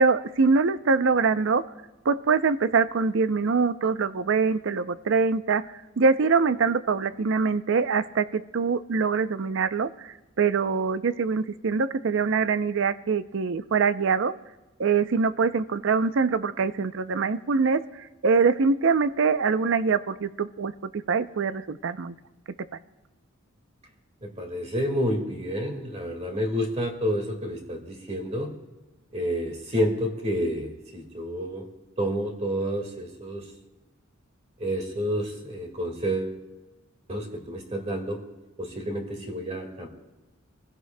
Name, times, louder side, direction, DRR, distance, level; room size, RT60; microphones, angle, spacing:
voice 1, 0.0-1.6 2.1-5.6 6.0-14.3 14.8-22.1, right 5 dB, 65° right, 13 dB, 0.5 m, -24 dB
voice 2, 24.2-28.5 29.1-31.7 32.0-33.5 34.6-36.4 37.1-38.2 38.6-39.9, equal, 30° right, 2 dB, 1.9 m, -29 dB
26.5 x 16.0 x 2.2 m, 1.1 s
head